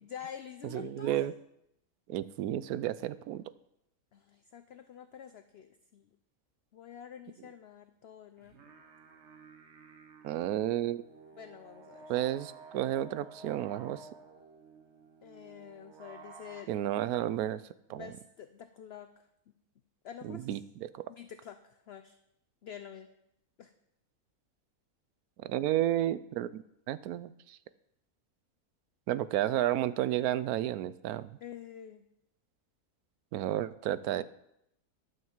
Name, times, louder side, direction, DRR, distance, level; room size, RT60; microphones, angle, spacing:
voice 1, 0.0-1.3 4.1-6.1 6.7-8.5 11.4-12.2 15.2-16.7 17.9-19.3 20.0-20.5 21.1-22.2 22.6-23.1 23.6-23.7 31.4-32.0, left 9 dB, 65° left, 9 dB, 0.6 m, -47 dB
voice 2, 0.7-1.3 2.1-3.4 10.2-11.0 12.1-14.1 16.7-17.6 17.9-18.1 20.2-21.0 25.4-27.6 29.1-31.4 33.3-34.2, right 13 dB, 75° right, 16 dB, 1.0 m, -32 dB
sound 1, 8.4-16.6, right 4 dB, 50° right, 1.3 m, -53 dB
12.5 x 5.5 x 7.3 m, 0.79 s
omnidirectional pair, 1.6 m